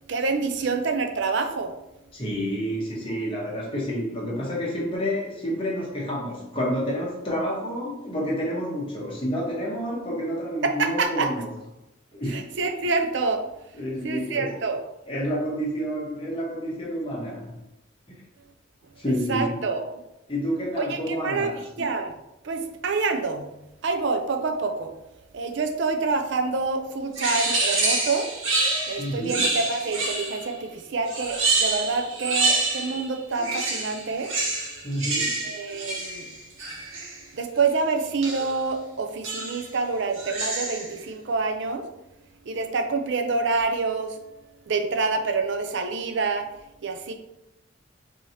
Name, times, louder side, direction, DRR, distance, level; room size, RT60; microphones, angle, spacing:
voice 1, 0.1-1.8 10.6-11.3 12.3-13.4 14.0-14.8 19.3-19.8 20.8-21.5 21.8-22.1 22.4-23.5 23.8-24.9 25.3-28.3 28.9-34.3 35.4-36.3 37.3-41.9 42.5-44.2 44.7-46.5 46.8-47.1, right 4 dB, 60° right, 5 dB, 0.5 m, -27 dB
voice 2, 2.1-11.5 12.2-12.4 13.8-14.6 15.1-17.6 18.1-18.2 19.0-19.6 20.3-21.6 29.0-29.5 34.8-35.4, equal, 25° left, -4 dB, 1.0 m, -29 dB
sound 1, 27.1-30.5 31.1-33.1 33.4-37.2 38.2-38.6 39.2-39.7 40.1-40.9, right 2 dB, 80° right, 1.2 m, -27 dB
4.7 x 2.8 x 2.8 m, 0.89 s
head